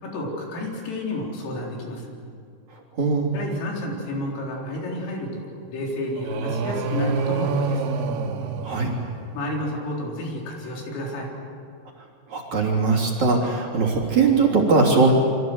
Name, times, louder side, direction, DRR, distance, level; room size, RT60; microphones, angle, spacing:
voice 1, 0.0-2.1 3.3-7.8 9.3-11.3, left 1 dB, 90° left, -1 dB, 6.7 m, -31 dB
voice 2, 3.0-3.3 8.6-8.9 12.3-15.1, right 4 dB, 40° right, -2 dB, 4.0 m, -20 dB
sound 1, 6.1-9.5, right 3 dB, 85° right, 4.4 m, -27 dB
28.0 x 24.5 x 7.9 m, 2.3 s
omnidirectional pair, 5.7 m